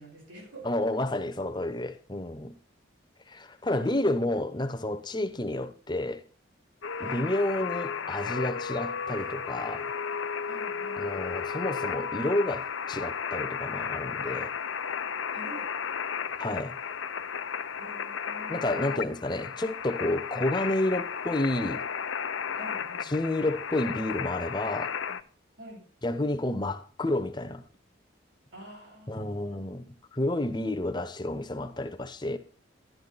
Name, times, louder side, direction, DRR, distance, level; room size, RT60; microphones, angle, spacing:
voice 1, 0.0-0.7 3.6-4.2 7.0-7.4 10.5-11.1 15.3-15.7 17.8-19.1 22.5-23.1 25.6-25.8 28.5-29.7, equal, 90° right, 6.6 m, -47 dB
voice 2, 0.6-2.6 3.3-6.2 7.0-9.9 11.0-14.5 16.4-16.7 18.5-21.8 23.0-25.0 26.0-27.6 29.1-32.4, left 1 dB, 20° left, 0.8 m, -30 dB
sound 1, 6.8-25.2, left 6 dB, 80° left, 0.7 m, -34 dB
11.5 x 10.5 x 4.1 m
head